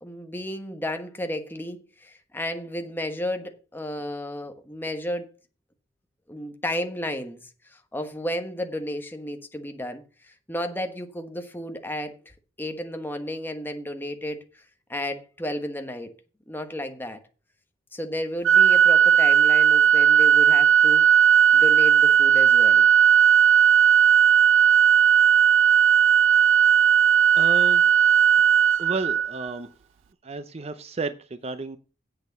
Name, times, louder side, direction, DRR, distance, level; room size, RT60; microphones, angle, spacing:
voice 1, 0.0-5.3 6.3-7.4 7.7-12.1 12.6-14.6 14.9-16.1 16.5-17.2 17.9-21.0 21.5-22.9, left 1 dB, 10° left, 1.3 m, -33 dB
Organ, 18.5-29.5, right 8 dB, 80° right, 0.4 m, -17 dB
voice 2, 27.3-27.8 28.8-29.7 30.2-31.8, right 3 dB, 30° right, 0.6 m, -32 dB
8.2 x 6.7 x 7.1 m
head